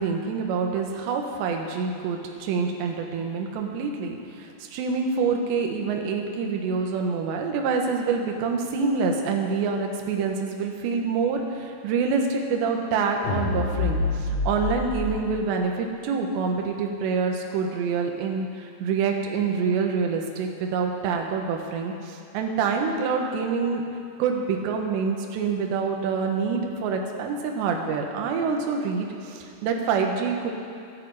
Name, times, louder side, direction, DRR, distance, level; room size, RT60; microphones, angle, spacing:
voice 1, 0.0-23.8 24.2-30.5, right 5 dB, 70° right, 2 dB, 3.1 m, -26 dB
sound 1, 13.2-15.1, left 4 dB, 45° left, 4.0 m, -27 dB
24.5 x 8.7 x 4.9 m, 2.4 s
omnidirectional pair, 5.9 m